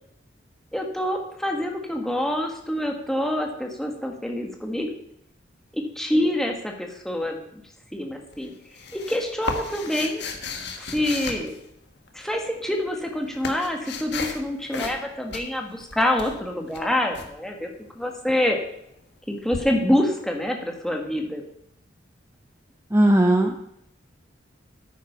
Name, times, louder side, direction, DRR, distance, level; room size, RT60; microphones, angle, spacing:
voice 1, 0.7-4.9 5.7-7.6 7.9-8.5 8.9-10.2 10.8-11.5 12.1-17.7 17.9-18.6 19.3-21.4, left 1 dB, ahead, 2 dB, 1.5 m, -26 dB
sound 1, 8.3-12.1 12.9-14.4 14.7-15.0 15.3-17.3 19.5-19.6, left 4 dB, 60° left, 1.5 m, -34 dB
voice 2, 22.9-23.6, right 1 dB, 15° right, 4 dB, 0.7 m, -18 dB
10.5 x 9.2 x 5.6 m, 0.75 s
head